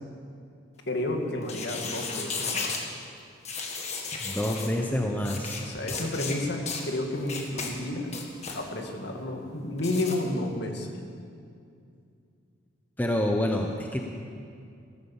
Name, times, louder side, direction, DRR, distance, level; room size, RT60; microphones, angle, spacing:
voice 1, 0.9-3.0 5.6-8.1 8.5-11.0, left 1 dB, 55° left, 2 dB, 2.1 m, -31 dB
sound 1, 1.4-2.8 3.4-4.7 5.2-5.6 5.9-6.4 6.7-6.8 7.3-7.7 8.1-8.6 9.8-10.2, left 4 dB, 35° left, 1.8 m, -34 dB
voice 2, 4.2-5.6 13.0-14.0, left 1 dB, 10° left, 1 dB, 0.9 m, -27 dB
15.0 x 13.0 x 7.2 m, 2.4 s
head